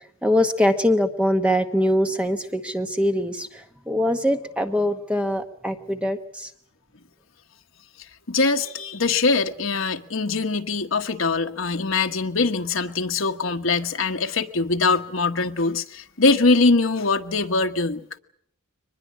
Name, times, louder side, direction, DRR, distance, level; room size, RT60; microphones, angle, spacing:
voice 1, 0.2-6.5, left 1 dB, 5° right, 1.1 m, -23 dB
voice 2, 8.3-18.0, left 3 dB, 60° left, 1.3 m, -22 dB
23.5 x 21.0 x 8.5 m
head